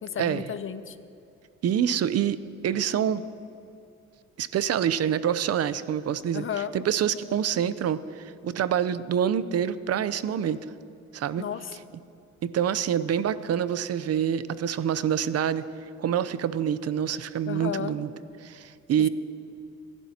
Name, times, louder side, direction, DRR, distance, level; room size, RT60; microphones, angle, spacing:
voice 1, 0.0-1.0 6.3-6.7 11.4-11.8 17.5-17.9 19.0-19.1, left 8 dB, 45° left, 13 dB, 0.6 m, -33 dB
voice 2, 1.6-2.4 2.6-3.2 4.4-6.4 6.7-10.6 11.1-11.4 12.4-15.6 16.0-18.1 18.4-19.1, right 9 dB, 55° right, 14 dB, 0.6 m, -26 dB
25.0 x 11.5 x 2.9 m, 2.6 s
cardioid pair, 90°, 30 cm